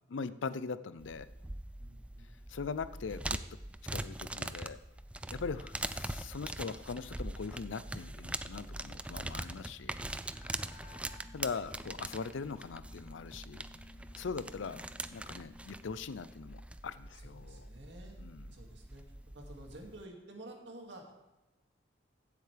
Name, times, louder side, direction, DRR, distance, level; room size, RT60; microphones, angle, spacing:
voice 1, 0.1-1.3 2.5-3.4 3.8-4.8 5.3-10.0 11.3-13.6 14.2-14.8 15.1-17.7 18.2-18.5, left 5 dB, 85° left, 15 dB, 0.5 m, -41 dB
sound 1, 1.0-20.0, right 1 dB, 5° right, 0.3 m, -43 dB
voice 2, 1.8-2.3 17.1-18.2 18.5-19.0 19.3-21.2, right 1 dB, 70° right, 1 dB, 2.3 m, -51 dB
sound 2, 10.3-16.7, left 4 dB, 40° left, 1.0 m, -58 dB
15.0 x 8.2 x 3.4 m, 1.0 s
head